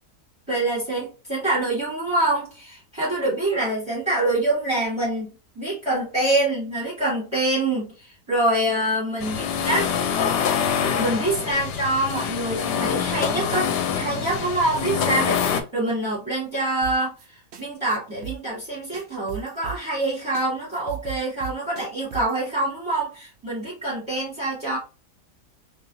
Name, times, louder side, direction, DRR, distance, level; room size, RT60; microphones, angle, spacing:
voice 1, 0.5-5.3 5.6-9.9 10.2-10.3 11.0-13.7 13.9-24.8, right 2 dB, 15° right, -7 dB, 1.8 m, -25 dB
sound 1, 9.2-15.6, left 7 dB, 80° left, 1.2 m, -25 dB
sound 2, 16.8-17.3 17.5-17.6 17.9-18.0 18.2-18.7 18.9-20.1 20.3-20.5 20.7-22.4, right 10 dB, 65° right, 0.6 m, -37 dB
3.2 x 2.9 x 2.7 m, 0.34 s
omnidirectional pair, 1.7 m